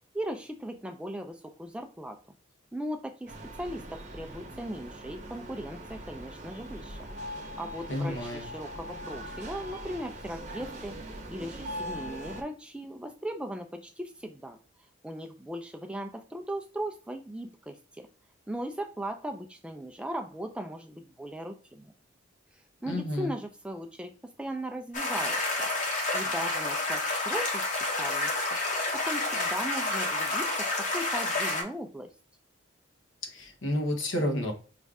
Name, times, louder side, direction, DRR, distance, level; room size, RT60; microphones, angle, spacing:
voice 1, 0.1-2.2 2.7-11.0 11.3-14.6 15.0-18.1 18.5-21.9 22.8-27.6 28.0-28.3 28.9-32.1, right 1 dB, 5° right, 5 dB, 0.3 m, -38 dB
sound 1, 3.3-12.4, equal, 35° right, 0.8 m, -41 dB
voice 2, 7.9-8.5 22.9-23.3 33.3-34.5, left 1 dB, 75° left, 3 dB, 1.0 m, -30 dB
sound 2, 24.9-31.6, left 2 dB, 40° left, 1.0 m, -29 dB
5.2 x 2.5 x 3.4 m, 0.39 s
head